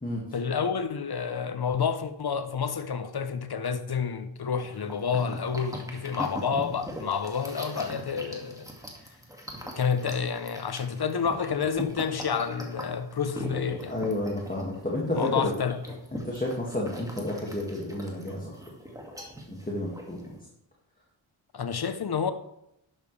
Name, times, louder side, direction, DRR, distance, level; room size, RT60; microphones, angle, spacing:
voice 1, 0.3-8.7 9.7-14.0 15.2-16.0 21.5-22.3, left 6 dB, 50° left, 0.9 m, -29 dB
sound 1, 4.6-20.4, equal, 5° right, 2.2 m, -41 dB
voice 2, 13.9-15.5 16.1-18.5 19.7-20.2, left 1 dB, 15° left, 2.2 m, -30 dB
10.5 x 7.4 x 3.4 m
cardioid pair, 45°, 48 cm